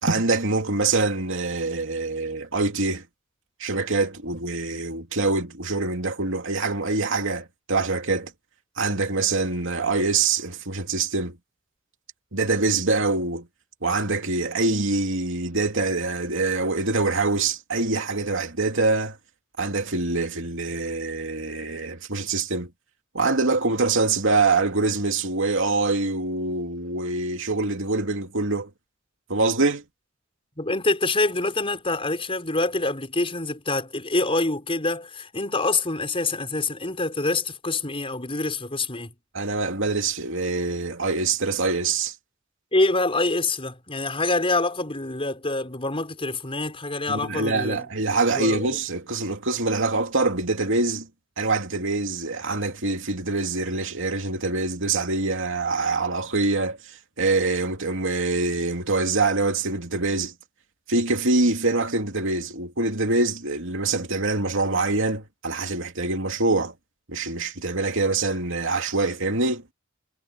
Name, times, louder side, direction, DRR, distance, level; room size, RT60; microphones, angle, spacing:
voice 1, 0.0-3.0 3.6-8.3 8.8-11.3 12.3-13.5 13.8-19.2 19.6-22.7 23.1-28.7 29.3-29.8 39.3-42.1 47.1-51.1 51.4-56.8 57.2-60.3 60.9-66.7 67.1-69.6, right 3 dB, 65° right, 2.9 m, -24 dB
voice 2, 30.6-39.1 42.7-47.9 48.3-48.8, left 2 dB, 25° left, 5.8 m, -26 dB
head